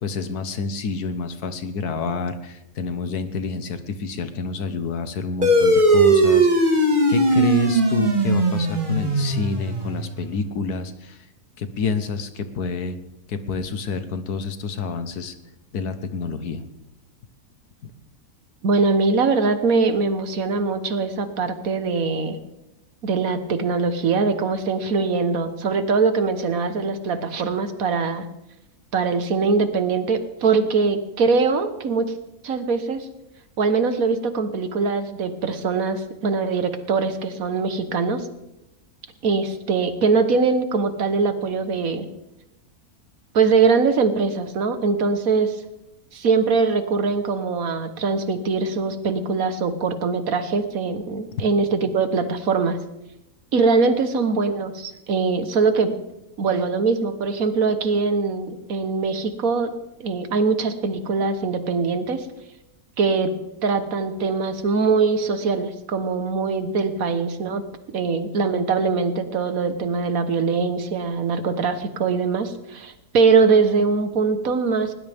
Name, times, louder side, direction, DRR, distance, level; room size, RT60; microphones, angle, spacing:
voice 1, 0.0-6.8 7.1-11.2 11.6-13.0 13.3-15.4 15.7-16.6 17.8-17.9, left 4 dB, 90° left, 10 dB, 1.7 m, -28 dB
sound 1, 5.4-10.3, right 2 dB, 35° right, 2.1 m, -19 dB
voice 2, 18.6-22.4 23.0-28.3 28.9-32.1 32.4-33.1 33.6-38.3 39.2-42.1 43.3-45.6 46.1-52.8 53.5-55.9 56.4-59.7 60.0-62.3 63.0-63.3 63.6-67.6 67.9-74.9, right 4 dB, 65° right, 9 dB, 1.6 m, -22 dB
20.0 x 18.0 x 3.5 m, 0.92 s
omnidirectional pair, 1.6 m